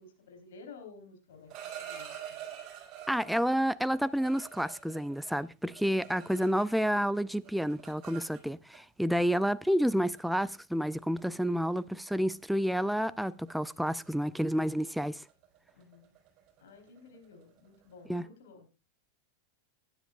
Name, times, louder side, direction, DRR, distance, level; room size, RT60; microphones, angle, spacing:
voice 1, 0.0-2.4 15.7-16.1 16.6-18.7, left 4 dB, 70° left, 3.8 m, -53 dB
sound 1, 1.3-3.4 3.9-7.0 7.2-8.8 9.7-9.8 10.2-10.5 10.9-11.2 11.5-11.8 12.1-12.3 12.6-18.0, right 10 dB, 45° right, 4.5 m, -47 dB
voice 2, 3.1-15.2 18.1-18.3, equal, ahead, 0.5 m, -30 dB
19.5 x 9.9 x 2.4 m
hypercardioid pair, 95°, 0 cm